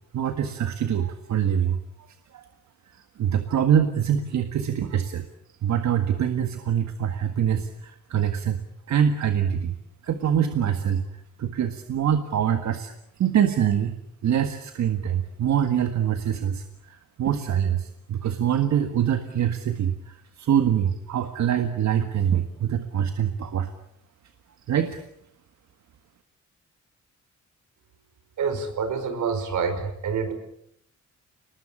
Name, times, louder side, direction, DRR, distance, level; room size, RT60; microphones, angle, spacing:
voice 1, 0.1-1.8 2.3-2.4 3.2-5.2 5.6-8.6 8.9-9.8 10.0-11.0 11.4-14.0 14.2-23.7 24.7-25.0, right 9 dB, 70° right, 8 dB, 1.8 m, -24 dB
voice 2, 28.4-30.3, right 5 dB, 85° right, 9 dB, 5.2 m, -27 dB
30.0 x 20.5 x 8.5 m, 0.73 s
wide cardioid pair, 150°, 29 cm